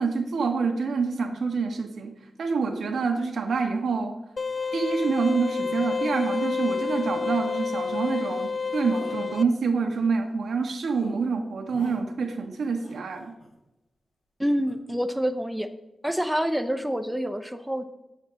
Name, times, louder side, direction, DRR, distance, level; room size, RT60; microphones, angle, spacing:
voice 1, 0.0-4.2 4.7-13.4, right 4 dB, 80° right, 4 dB, 1.5 m, -27 dB
sound 1, 4.4-9.4, left 5 dB, 35° left, 0.4 m, -29 dB
sound 2, 4.5-5.2 5.6-5.8 7.0-7.2 7.7-8.0 8.3-8.6 8.9-9.2 9.7-10.6 10.9-11.1 11.7-12.0 12.6-13.5 14.6-14.7, left 2 dB, 60° left, 2.8 m, -48 dB
voice 2, 14.4-15.7 16.0-17.8, equal, 5° right, 7 dB, 0.7 m, -27 dB
9.8 x 8.4 x 6.4 m, 0.97 s
wide cardioid pair, 150°, 0 cm